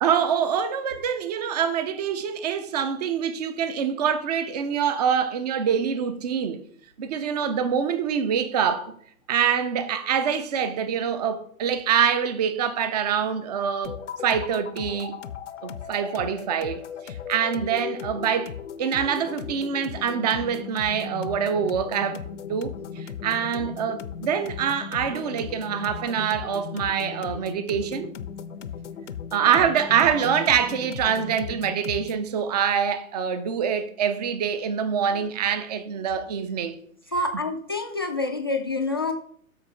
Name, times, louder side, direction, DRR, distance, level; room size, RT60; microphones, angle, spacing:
voice 1, 0.0-6.6 7.0-8.9 9.3-15.2 15.6-22.2 22.5-28.1 29.3-36.8, right 7 dB, 30° right, 0.7 m, -25 dB
sound 1, 13.8-32.3, left 7 dB, 55° left, 0.6 m, -37 dB
voice 2, 37.1-39.1, left 2 dB, 20° left, 0.4 m, -27 dB
12.5 x 4.3 x 3.7 m
figure-of-eight pair, 125°, 42 cm